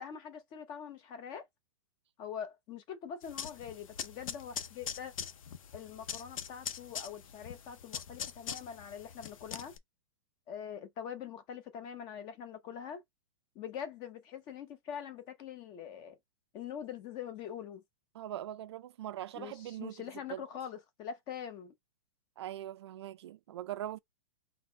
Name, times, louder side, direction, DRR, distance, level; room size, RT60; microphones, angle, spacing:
voice 1, 0.0-1.5 2.2-5.3 5.7-9.7 10.5-13.0 13.5-16.2 16.5-17.8 19.3-21.7, left 8 dB, 25° left, 0.8 m, -44 dB
sound 1, 3.2-9.8, left 8 dB, 70° left, 0.8 m, -43 dB
voice 2, 18.1-20.0 20.3-20.4 22.4-24.0, right 12 dB, 50° right, 0.4 m, -41 dB
4.0 x 2.2 x 4.4 m
hypercardioid pair, 165°, 18 cm